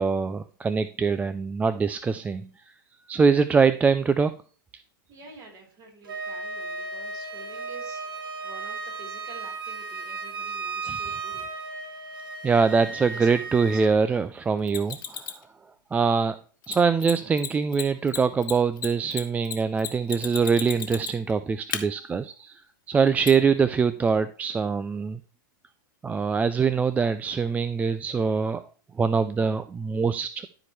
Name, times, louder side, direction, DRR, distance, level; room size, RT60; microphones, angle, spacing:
voice 1, 0.0-2.4 3.1-4.3 10.9-11.0 12.4-15.2 15.9-16.4 16.7-22.6 22.9-25.2 26.0-28.6 29.0-30.5, right 5 dB, 15° right, 12 dB, 0.3 m, -23 dB
voice 2, 5.1-11.5 12.2-12.7 13.1-13.8, right 3 dB, 35° right, -1 dB, 3.9 m, -48 dB
Wind instrument woodwind instrument, 6.0-13.9, right 4 dB, 85° right, 1.4 m, -35 dB
Mechanisms, 14.7-15.4 16.6-16.7 17.0-17.1 17.4-17.5 17.7-21.3 21.7-21.8 23.3-23.4, left 9 dB, 80° left, 1.3 m, -33 dB
13.0 x 4.5 x 3.2 m, 0.40 s
hypercardioid pair, 115°, 11 cm